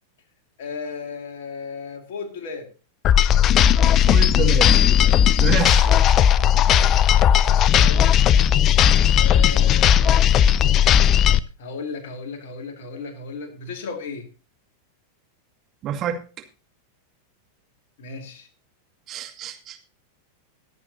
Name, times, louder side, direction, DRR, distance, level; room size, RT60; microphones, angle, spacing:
voice 1, 0.6-2.7 7.8-8.1 9.1-10.1 11.6-14.3 18.0-18.5, left 4 dB, 55° left, 2.3 m, -35 dB
sound 1, 3.0-11.4, left 9 dB, 30° left, 0.5 m, -16 dB
voice 2, 4.1-4.7 5.4-5.9 15.8-16.2 19.1-19.8, right 8 dB, 30° right, 2.2 m, -27 dB
22.0 x 8.4 x 2.8 m
figure-of-eight pair, 90°, 0 cm